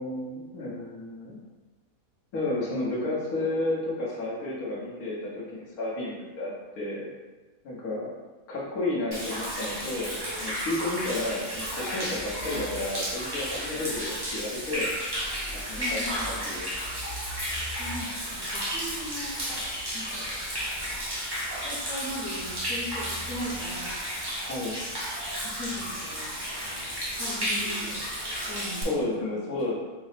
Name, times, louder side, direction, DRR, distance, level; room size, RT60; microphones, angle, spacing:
voice 1, 0.0-1.4 2.3-7.1 7.6-8.1 8.5-14.9 15.5-16.7 24.4-24.7 27.8-27.9 28.8-29.8, left 2 dB, 75° left, -7 dB, 1.4 m, -32 dB
Human voice / Rain / Stream, 9.1-28.8, equal, 20° right, 0.8 m, -33 dB
voice 2, 15.7-16.3 17.8-19.3 19.9-20.2 21.6-23.9 25.4-26.3 27.2-28.1 28.5-29.3, left 1 dB, 60° left, -6 dB, 1.4 m, -38 dB
4.8 x 2.0 x 4.0 m, 1.3 s
omnidirectional pair, 1.5 m